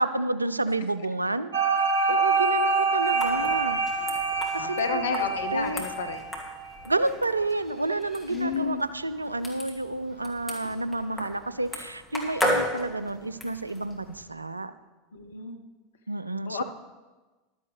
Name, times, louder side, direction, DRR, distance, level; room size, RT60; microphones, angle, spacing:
voice 1, 0.0-1.5 2.1-3.8 4.5-5.3 5.5-5.8 6.9-14.7 16.1-16.6, right 2 dB, 90° right, 14 dB, 0.4 m, -30 dB
sound 1, 1.5-6.6, right 4 dB, 70° right, 1.6 m, -26 dB
sound 2, 3.2-14.2, left 1 dB, ahead, 2.5 m, -36 dB
voice 2, 4.6-6.3 8.3-8.8 15.1-15.6 16.5-16.6, left 6 dB, 70° left, 7 dB, 0.8 m, -31 dB
14.0 x 12.0 x 3.4 m, 1.2 s
figure-of-eight pair, 80°, 0 cm